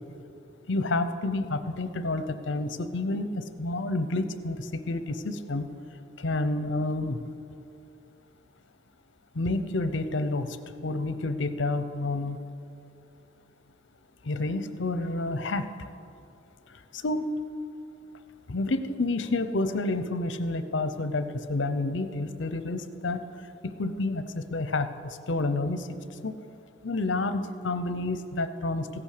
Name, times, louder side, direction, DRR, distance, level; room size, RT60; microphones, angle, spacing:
voice 1, 0.7-5.7 6.2-7.2 9.3-10.6 10.8-12.4 14.2-15.9 16.9-17.3 18.5-23.2 23.6-25.9 26.2-26.4 26.8-29.0, left 2 dB, 60° left, 11 dB, 0.7 m, -29 dB
16.0 x 8.7 x 6.6 m, 2.6 s
head